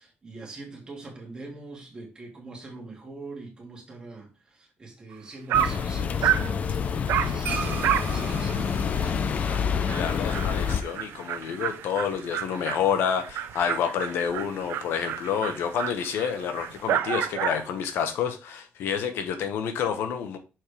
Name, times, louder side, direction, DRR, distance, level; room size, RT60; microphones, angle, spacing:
voice 1, 0.0-9.2, right 2 dB, 20° right, 2.2 m, -43 dB
Dog, 5.1-5.2 5.5-5.8 6.2-6.5 7.1-7.4 7.8-8.1 8.5-8.6 9.0-9.1 9.5-9.6 9.9-17.7, right 11 dB, 80° right, 0.6 m, -30 dB
sound 1, 5.5-10.8, left 7 dB, 35° left, 0.5 m, -27 dB
sound 2, 7.4-12.1, right 5 dB, 65° right, 1.4 m, -39 dB
voice 2, 9.8-20.4, left 7 dB, 75° left, 1.1 m, -29 dB
6.3 x 4.7 x 3.4 m
cardioid pair, 160°, 4 cm